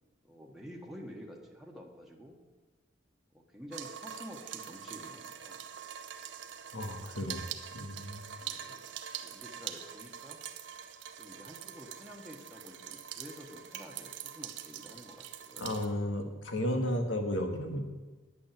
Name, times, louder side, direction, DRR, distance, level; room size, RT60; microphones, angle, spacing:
voice 1, 0.2-2.4 3.3-5.6 8.4-8.9 9.2-10.4 11.2-15.8, equal, ahead, -1 dB, 1.3 m, -49 dB
sound 1, 3.7-15.9, right 9 dB, 75° right, 0.8 m, -44 dB
voice 2, 6.7-7.4 7.7-8.3 15.6-17.8, left 1 dB, 90° left, 5 dB, 1.8 m, -33 dB
9.9 x 8.6 x 7.6 m, 1.2 s
head